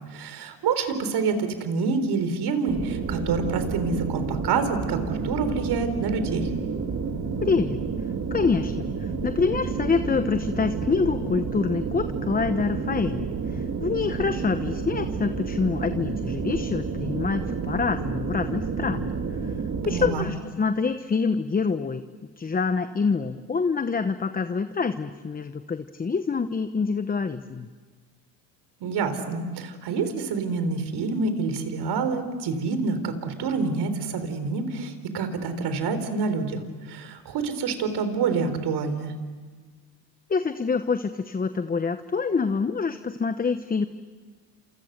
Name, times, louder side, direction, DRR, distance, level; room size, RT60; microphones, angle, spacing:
voice 1, 0.1-6.5 19.8-20.3 28.8-36.6 36.9-39.1, right 4 dB, 55° right, 10 dB, 4.0 m, -27 dB
sound 1, 2.7-20.1, right 5 dB, 35° right, 3.2 m, -30 dB
voice 2, 7.4-7.8 8.3-19.1 19.4-19.5 19.8-22.0 22.4-27.7 40.3-43.9, left 5 dB, 20° left, 10 dB, 1.0 m, -26 dB
30.0 x 27.5 x 6.7 m, 1.5 s
supercardioid pair, 105°, 46 cm